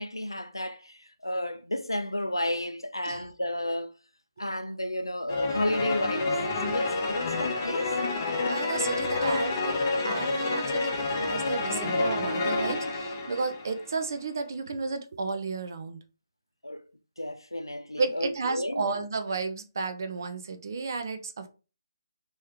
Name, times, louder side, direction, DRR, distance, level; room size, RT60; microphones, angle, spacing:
voice 1, 0.0-3.9 4.4-6.4 6.6-8.0 16.6-16.8 17.2-18.9, left 1 dB, 90° left, 0.5 m, -32 dB
sound 1, 5.3-13.8, left 3 dB, 35° left, 0.9 m, -29 dB
voice 2, 8.5-9.8 10.0-16.0 18.0-21.5, right 4 dB, 50° right, 0.7 m, -32 dB
3.3 x 3.1 x 3.5 m
figure-of-eight pair, 145°, 2 cm